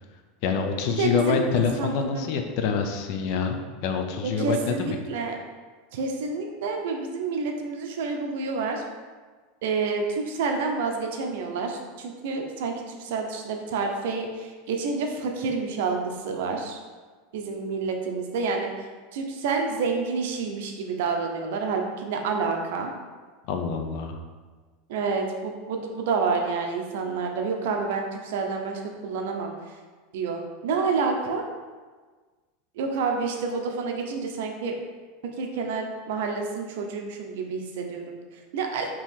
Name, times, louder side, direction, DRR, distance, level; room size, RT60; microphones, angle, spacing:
voice 1, 0.4-5.0 23.5-24.2, left 6 dB, 55° left, 5 dB, 0.5 m, -26 dB
voice 2, 1.0-2.3 4.2-5.4 5.9-8.8 9.6-16.8 17.3-22.9 24.9-29.7 30.1-31.4 32.8-34.8 35.4-38.9, right 4 dB, 75° right, 3 dB, 0.6 m, -29 dB
4.4 x 2.9 x 3.6 m, 1.4 s
supercardioid pair, 150°, 0 cm